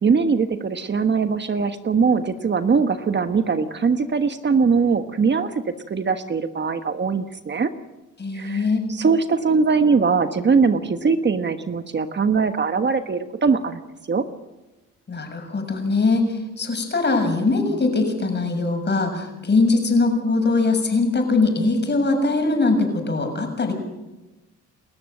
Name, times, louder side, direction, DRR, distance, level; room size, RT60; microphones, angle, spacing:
voice 1, 0.0-5.6 5.9-7.7 8.3-13.8 14.1-14.2, right 5 dB, 35° right, 8 dB, 1.4 m, -21 dB
voice 2, 8.2-8.9 15.1-23.7, left 3 dB, 35° left, 4 dB, 7.0 m, -21 dB
29.5 x 14.0 x 7.9 m, 1.0 s
cardioid pair, 90°, 30 cm